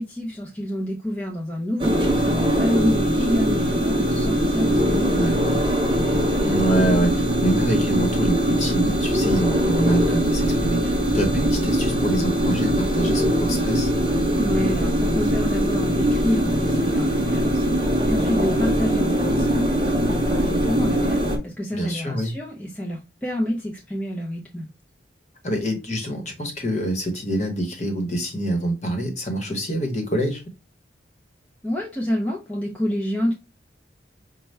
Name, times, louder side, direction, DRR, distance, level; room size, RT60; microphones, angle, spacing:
voice 1, 0.0-5.6 14.4-24.7 31.6-33.3, equal, 10° left, 0.5 m, -28 dB
sound 1, 1.8-21.4, equal, 25° right, 0.8 m, -21 dB
voice 2, 5.1-5.6 6.4-13.9 21.7-22.3 25.4-30.4, right 1 dB, 40° left, 1.0 m, -26 dB
5.3 x 2.2 x 3.2 m
head